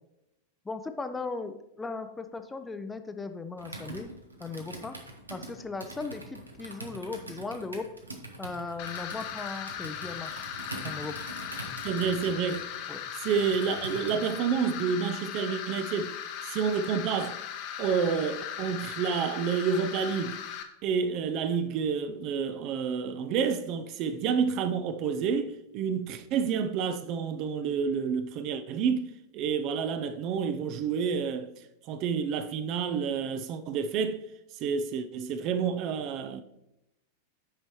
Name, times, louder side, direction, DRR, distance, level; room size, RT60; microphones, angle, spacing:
voice 1, 0.6-4.1 4.4-5.0 5.3-7.9 8.4-10.5 10.8-11.2 12.9-13.0, left 3 dB, 10° left, 0.5 m, -37 dB
Computer keyboard, 3.6-14.4, right 2 dB, 80° right, 1.0 m, -44 dB
sound 1, 8.8-20.6, left 9 dB, 45° left, 0.8 m, -38 dB
voice 2, 11.8-12.8 13.2-16.1 16.4-17.4 17.8-20.4 20.8-31.5 31.9-34.2 34.5-36.4, right 6 dB, 40° right, 0.5 m, -29 dB
8.7 x 5.2 x 3.0 m
figure-of-eight pair, 90°, 0 cm